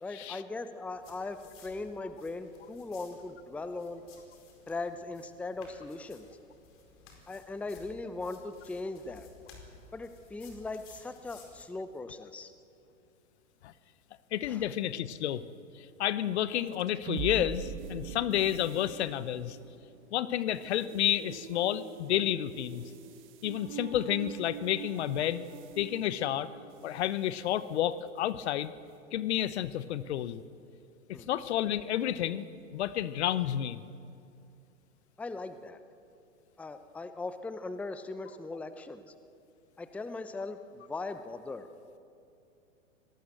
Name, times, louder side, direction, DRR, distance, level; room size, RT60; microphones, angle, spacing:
voice 1, 0.0-4.0 4.7-6.3 7.3-9.3 9.9-12.5 14.5-14.6 31.1-31.3 35.2-35.8 36.6-39.1 39.8-41.7, left 3 dB, 5° left, 10 dB, 0.7 m, -39 dB
sound 1, 1.0-11.6, left 4 dB, 30° left, 4.7 m, -57 dB
voice 2, 14.3-15.4 15.7-19.6 20.1-22.8 23.4-25.4 25.8-26.5 26.8-28.7 29.1-30.4 31.1-32.4 32.7-33.8, left 11 dB, 55° left, 16 dB, 1.0 m, -30 dB
sound 2, 16.7-27.2, right 8 dB, 30° right, 1.4 m, -44 dB
25.0 x 18.5 x 7.7 m, 2.5 s
hypercardioid pair, 110°, 39 cm